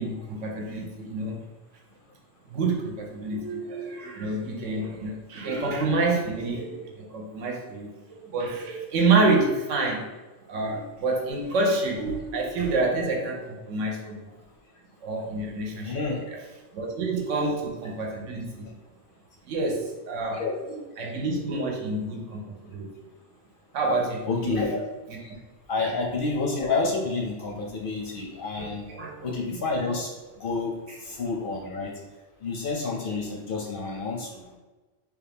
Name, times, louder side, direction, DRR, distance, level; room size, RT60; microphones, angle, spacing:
voice 1, 0.0-1.4 2.5-10.0 10.5-14.2 15.0-16.0 16.3-16.4 16.7-18.6 19.4-20.4 21.0-22.9 23.7-24.6 25.8-25.9 28.6-29.3, right 3 dB, 85° right, 0 dB, 1.0 m, -28 dB
voice 2, 15.8-16.2 20.3-20.5 24.3-24.8 25.2-25.3 25.7-28.9 29.2-30.1 30.4-30.7 31.0-31.9 32.4-34.6, left 3 dB, 60° left, -1 dB, 0.6 m, -29 dB
3.3 x 2.3 x 3.4 m, 1.2 s
omnidirectional pair, 1.2 m